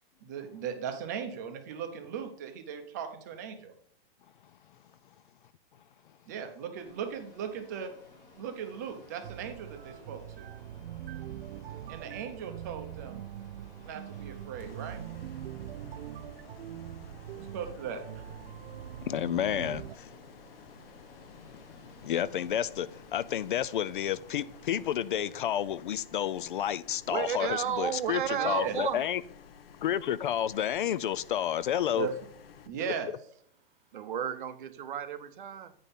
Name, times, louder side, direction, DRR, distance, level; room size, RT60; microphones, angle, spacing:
voice 1, 0.2-3.7 6.3-7.9 8.4-10.5 11.9-13.2 13.8-15.0 17.3-18.3 28.3-28.8 31.9-32.1 32.6-33.1, right 7 dB, 20° right, 0.6 m, -38 dB
sound 1, 6.7-25.3, left 2 dB, 10° left, 0.8 m, -56 dB
sound 2, 9.2-20.0, right 12 dB, 85° right, 0.5 m, -43 dB
voice 2, 11.5-11.8 15.8-16.2 19.0-20.1 22.0-29.2 29.8-32.1, left 10 dB, 60° left, 0.4 m, -31 dB
sound 3, 14.6-32.7, left 6 dB, 75° left, 1.0 m, -54 dB
voice 3, 27.1-29.0 33.9-35.7, right 9 dB, 60° right, 0.8 m, -33 dB
9.0 x 5.4 x 4.1 m
hypercardioid pair, 180°, 29 cm